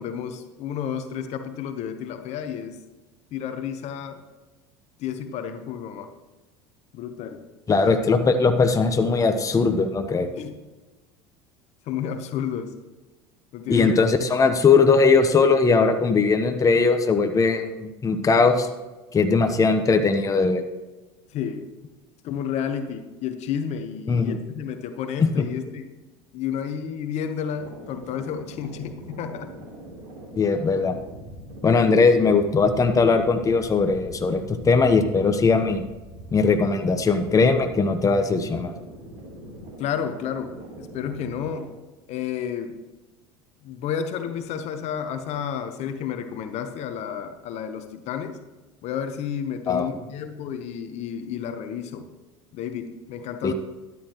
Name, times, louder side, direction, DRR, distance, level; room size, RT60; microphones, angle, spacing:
voice 1, 0.0-2.8 3.3-4.2 5.0-6.1 6.9-7.4 10.3-10.6 11.9-12.8 13.5-14.0 21.3-21.7 22.2-25.9 26.3-29.6 39.8-41.7 42.1-42.8 43.6-48.4 48.8-52.1 52.5-53.5, left 8 dB, 55° left, 8 dB, 1.0 m, -31 dB
voice 2, 7.7-10.3 13.7-18.7 19.1-20.6 24.1-24.4 25.2-25.4 30.4-31.0 31.6-35.8 36.3-38.7 49.7-49.9 53.4-53.5, left 4 dB, 25° left, 6 dB, 1.0 m, -20 dB
sound 1, 27.5-41.6, right 1 dB, 70° right, 3.4 m, -42 dB
13.0 x 11.0 x 3.1 m, 1.2 s
hypercardioid pair, 75°, 14 cm